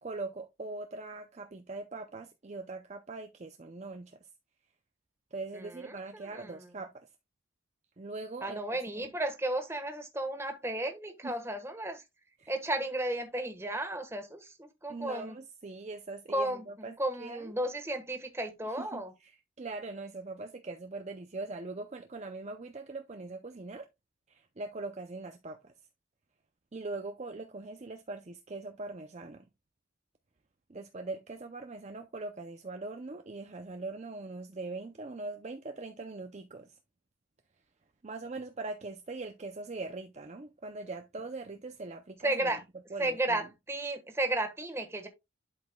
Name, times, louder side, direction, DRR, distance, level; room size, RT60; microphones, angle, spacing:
voice 1, 0.0-4.2 5.3-7.1 8.0-8.6 9.0-9.1 11.2-11.3 12.4-12.5 14.9-17.5 18.8-23.9 24.3-25.7 26.7-29.5 30.7-36.8 38.0-42.5 42.9-43.4, right 3 dB, 35° right, 0.5 m, -41 dB
voice 2, 5.5-6.7 8.4-12.0 12.5-15.4 16.3-19.1 42.2-42.6 43.0-45.1, right 1 dB, 10° right, 1.3 m, -34 dB
11.5 x 5.1 x 2.2 m
head